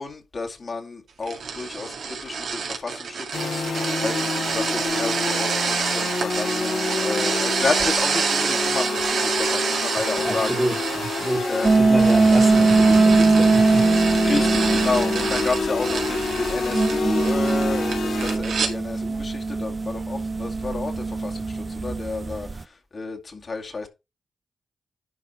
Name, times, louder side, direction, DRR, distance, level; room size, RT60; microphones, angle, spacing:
voice 1, 0.0-10.6 11.5-11.9 14.2-23.9, left 3 dB, 50° left, 2.2 m, -31 dB
sound 1, 1.2-18.7, right 5 dB, 80° right, 2.1 m, -28 dB
sound 2, 3.3-18.4, left 3 dB, 90° left, 3.4 m, -28 dB
voice 2, 10.2-11.5 11.8-13.9, equal, 5° left, 1.7 m, -28 dB
sound 3, 11.6-22.6, right 3 dB, 35° right, 0.5 m, -21 dB
11.0 x 5.0 x 4.5 m
cardioid pair, 65°, 0 cm